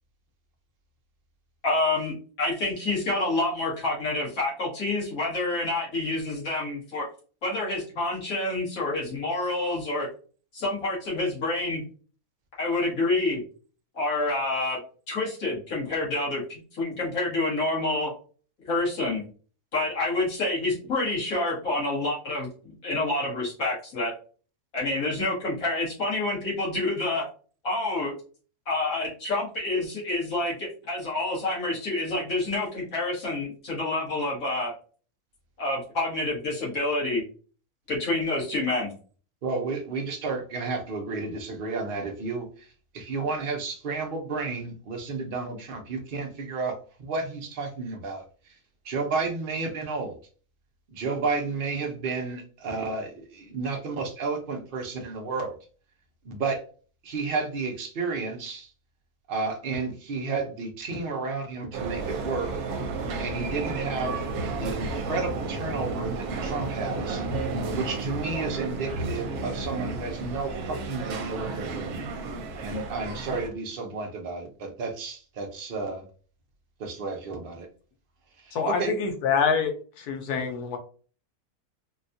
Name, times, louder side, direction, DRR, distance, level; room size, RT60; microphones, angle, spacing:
voice 1, 1.6-7.0 7.4-10.1 10.5-11.8 12.6-13.4 13.9-14.8 15.1-18.1 18.7-19.2 19.7-24.1 24.7-27.3 27.6-28.1 28.7-34.7 35.6-37.2 37.9-38.9, left 2 dB, 65° left, -5 dB, 2.0 m, -28 dB
voice 2, 39.4-46.7 47.0-48.2 48.8-50.2 50.9-55.5 56.2-56.6 57.0-58.7 59.3-62.5 63.2-67.3 67.7-72.0 72.6-76.0 76.8-77.7 78.4-78.9, right 4 dB, 50° right, 3 dB, 0.7 m, -32 dB
sound 1, 61.7-73.5, right 3 dB, 75° right, 1.1 m, -32 dB
voice 3, 78.5-79.7 80.0-80.8, left 6 dB, 85° left, 5 dB, 1.3 m, -26 dB
4.0 x 2.3 x 2.6 m, 0.40 s
omnidirectional pair, 1.6 m